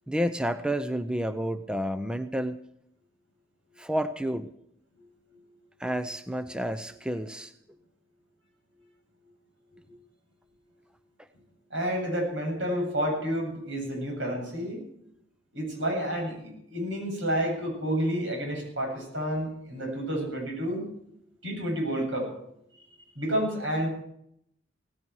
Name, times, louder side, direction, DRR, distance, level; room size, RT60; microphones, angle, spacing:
voice 1, 0.1-2.6 3.8-4.5 5.8-7.5 11.2-11.3, equal, 5° right, 10 dB, 0.5 m, -30 dB
voice 2, 11.7-14.8 15.5-20.9 21.4-22.3 23.2-23.9, equal, 80° right, 2 dB, 8.0 m, -30 dB
17.5 x 16.0 x 4.7 m, 0.74 s
head